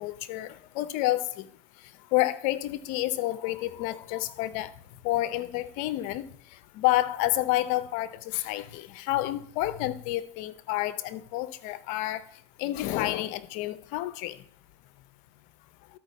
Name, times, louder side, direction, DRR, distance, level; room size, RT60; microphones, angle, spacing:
voice 1, 0.0-1.5 2.1-4.7 5.0-6.3 6.7-12.2 12.6-14.4, left 16 dB, 60° left, 0.6 m, -29 dB
13.0 x 4.6 x 4.1 m
hypercardioid pair, 95°, 15 cm